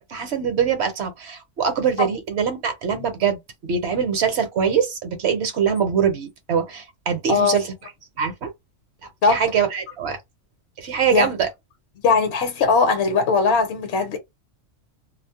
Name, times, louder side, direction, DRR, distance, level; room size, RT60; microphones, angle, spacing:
voice 1, 0.1-7.7 8.2-8.5 9.2-10.2 10.8-11.5, right 7 dB, 60° right, 0.9 m, -23 dB
voice 2, 7.3-7.6 9.2-9.4 11.1-11.3 12.0-14.2, left 4 dB, 60° left, 0.9 m, -19 dB
2.4 x 2.0 x 2.7 m
omnidirectional pair, 1.3 m